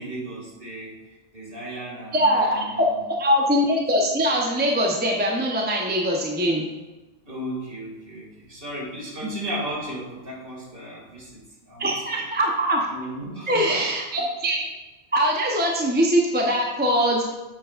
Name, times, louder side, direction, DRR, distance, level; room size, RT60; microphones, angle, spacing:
voice 1, 0.0-3.0 7.2-12.2 12.9-13.8, right 1 dB, 50° right, -3 dB, 2.5 m, -35 dB
voice 2, 2.1-2.9 3.2-6.7 9.2-9.3 11.8-12.9 13.5-14.7 15.1-17.2, equal, 10° right, -1 dB, 0.8 m, -22 dB
9.2 x 7.6 x 2.5 m, 1.1 s
omnidirectional pair, 1.3 m